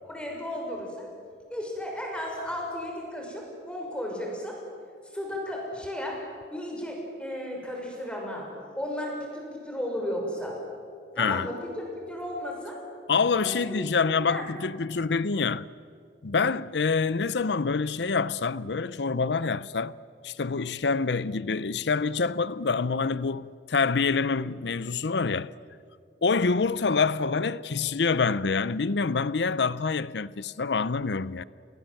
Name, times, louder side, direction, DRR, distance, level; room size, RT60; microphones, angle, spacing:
voice 1, 0.0-1.1 1.5-4.6 5.1-6.2 6.5-8.4 8.7-10.5 11.1-12.8 13.3-13.9 14.3-14.4, left 1 dB, 5° left, 6.4 m, -34 dB
voice 2, 11.2-11.5 13.1-15.7 16.2-20.0 20.2-25.5 26.2-31.4, left 4 dB, 80° left, 0.7 m, -26 dB
30.0 x 23.5 x 7.9 m
head